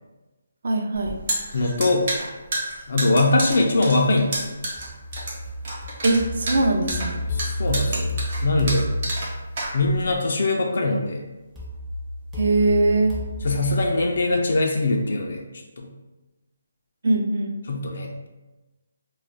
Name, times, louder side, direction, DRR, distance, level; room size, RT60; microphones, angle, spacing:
voice 1, 0.6-1.2 6.0-7.2 12.4-13.1 17.0-17.6, right 2 dB, 60° right, 3 dB, 0.4 m, -21 dB
sound 1, 0.9-10.1, right 1 dB, 40° right, 0.8 m, -30 dB
voice 2, 1.5-2.1 2.9-4.6 7.3-8.9 9.7-11.2 13.4-15.4 15.8-15.9 17.7-18.3, left 2 dB, 60° left, 1 dB, 0.3 m, -22 dB
sound 2, 4.8-9.7 11.6-14.6, left 1 dB, 5° right, 0.5 m, -30 dB
2.3 x 2.0 x 3.7 m, 1.1 s
hypercardioid pair, 165°, 0 cm